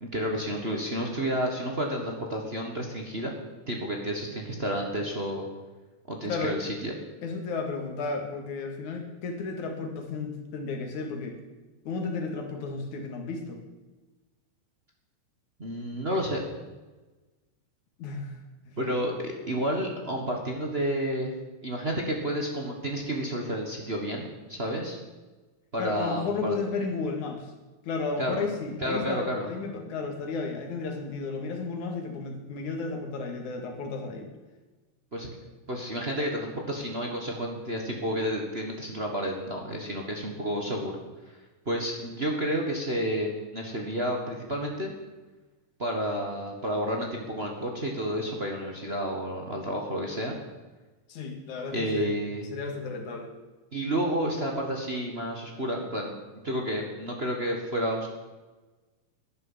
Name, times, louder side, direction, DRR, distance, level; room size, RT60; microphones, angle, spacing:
voice 1, 0.0-3.3 3.7-5.4 6.1-6.9 15.6-16.7 18.8-21.3 21.6-25.0 25.7-26.5 28.2-28.4 28.8-29.5 35.1-35.3 35.7-41.0 41.6-44.9 45.8-50.4 51.7-52.5 53.7-56.1 56.4-58.1, equal, 35° right, 1 dB, 1.0 m, -30 dB
voice 2, 7.2-11.4 11.8-13.6 18.0-18.4 18.7-18.8 25.8-27.5 27.8-34.3 51.1-52.1 52.5-53.3, left 4 dB, 65° left, 4 dB, 3.2 m, -33 dB
12.0 x 10.5 x 7.4 m, 1.2 s
omnidirectional pair, 3.7 m